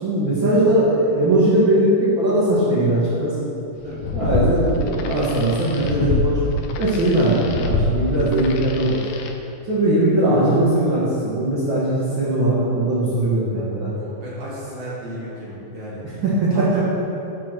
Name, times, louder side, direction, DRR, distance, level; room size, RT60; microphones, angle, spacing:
voice 1, 0.0-3.3 4.1-6.4 6.8-9.0 9.7-13.9 16.0-16.7, right 1 dB, 45° right, -10 dB, 2.1 m, -19 dB
sound 1, 3.8-9.3, left 2 dB, 85° left, 2.1 m, -25 dB
voice 2, 13.9-16.0 16.5-16.8, right 1 dB, 65° right, -8 dB, 2.9 m, -34 dB
11.0 x 3.7 x 6.3 m, 2.9 s
omnidirectional pair, 3.3 m